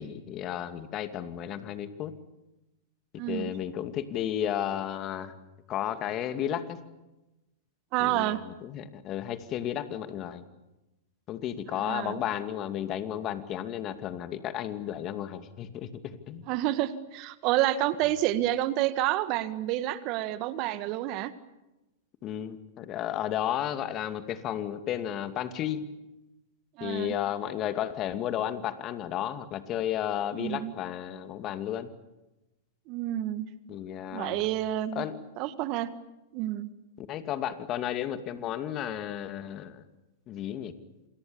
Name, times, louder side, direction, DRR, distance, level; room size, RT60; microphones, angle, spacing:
voice 1, 0.0-2.1 3.3-5.3 5.7-6.8 8.0-10.4 11.3-16.4 22.2-25.8 26.8-31.9 33.7-34.4 34.9-35.2 37.0-39.8 40.3-40.7, left 10 dB, 35° left, 9 dB, 2.5 m, -33 dB
voice 2, 3.2-3.5 7.9-8.4 11.8-12.2 16.5-21.3 26.8-27.1 30.4-30.7 32.9-33.5 34.1-35.1 35.4-35.9 36.3-36.7, right 14 dB, 45° right, 13 dB, 1.7 m, -29 dB
27.5 x 27.5 x 7.2 m, 1.0 s
hypercardioid pair, 105°, 0 cm